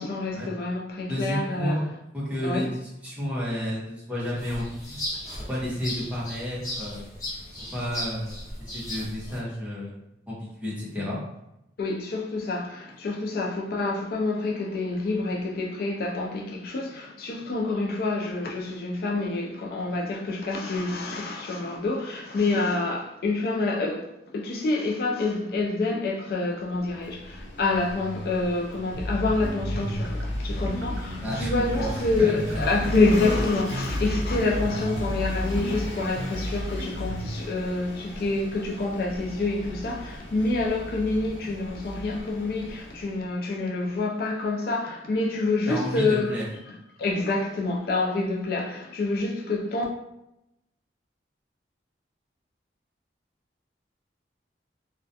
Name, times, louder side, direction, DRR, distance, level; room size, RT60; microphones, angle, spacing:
voice 1, 0.0-1.8 2.4-2.7 11.8-49.8, left 3 dB, 55° left, 0.3 m, -27 dB
voice 2, 1.1-1.8 2.1-2.7 3.0-5.0 5.5-7.0 7.7-8.3 8.7-9.9 10.3-11.2 31.2-32.3 33.2-33.4 45.7-46.5, equal, 10° right, 0.7 m, -31 dB
sound 1, 4.4-9.4, left 1 dB, 20° left, 1.1 m, -36 dB
Vehicle / Engine, 26.6-43.3, equal, 90° left, 0.8 m, -39 dB
sound 2, 28.9-37.4, equal, 90° right, 0.4 m, -31 dB
2.3 x 2.1 x 2.6 m
head